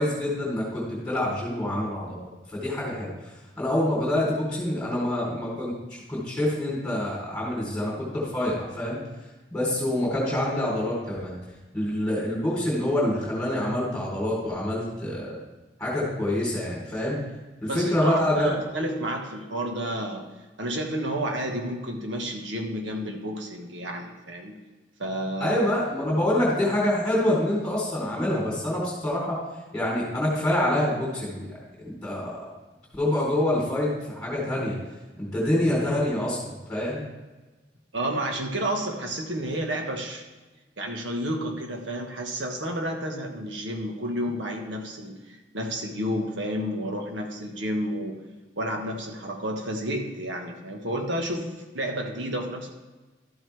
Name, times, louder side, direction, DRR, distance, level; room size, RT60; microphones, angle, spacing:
voice 1, 0.0-2.2 2.5-3.1 3.6-5.7 6.1-9.0 9.5-11.3 11.7-15.4 15.8-17.2 17.6-18.5 25.4-29.4 29.7-31.5 32.0-32.5 32.9-34.8 35.2-36.4 36.7-37.0, left 1 dB, 5° left, -5 dB, 3.6 m, -26 dB
voice 2, 17.7-20.3 20.6-24.5 25.0-25.6 37.9-40.2 40.8-48.2 48.6-52.7, right 1 dB, 85° right, 2 dB, 1.5 m, -31 dB
12.5 x 7.9 x 3.4 m, 1.2 s
head